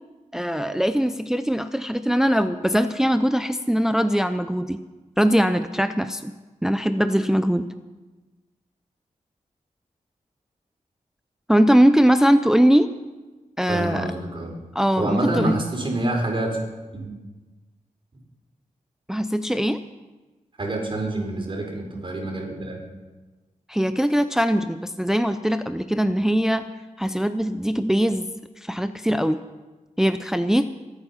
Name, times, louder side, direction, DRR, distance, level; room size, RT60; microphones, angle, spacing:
voice 1, 0.3-4.8 5.2-6.3 6.6-7.7 11.5-12.9 13.6-14.1 14.7-15.6 19.1-19.8 23.7-26.7 27.0-28.3 28.6-29.4 30.0-30.6, equal, 5° right, 10 dB, 0.5 m, -21 dB
voice 2, 13.7-14.5 15.0-16.6 16.9-17.1 20.6-22.8, right 1 dB, 40° right, 0 dB, 4.7 m, -27 dB
23.5 x 9.1 x 5.7 m, 1.2 s
wide cardioid pair, 90°, 13 cm